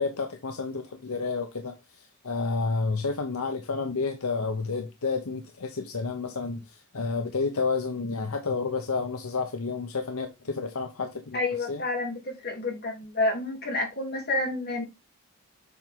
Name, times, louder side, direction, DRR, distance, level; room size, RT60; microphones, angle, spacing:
voice 1, 0.0-11.4 11.7-11.8, left 4 dB, 80° left, 0.9 m, -30 dB
voice 2, 11.3-14.8, left 2 dB, 45° left, 3.5 m, -29 dB
7.7 x 4.4 x 3.8 m
head